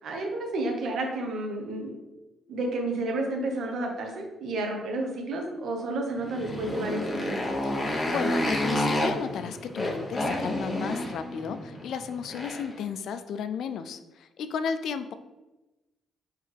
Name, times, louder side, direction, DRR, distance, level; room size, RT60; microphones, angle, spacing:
voice 1, 0.0-1.9 2.5-7.4, right 2 dB, 65° right, 2 dB, 1.0 m, -31 dB
Motorcycle, 6.2-12.8, left 1 dB, 25° left, 1.1 m, -30 dB
voice 2, 8.1-15.1, left 6 dB, 70° left, 10 dB, 0.3 m, -34 dB
4.5 x 3.2 x 3.4 m, 1.1 s
cardioid pair, 90°, 0 cm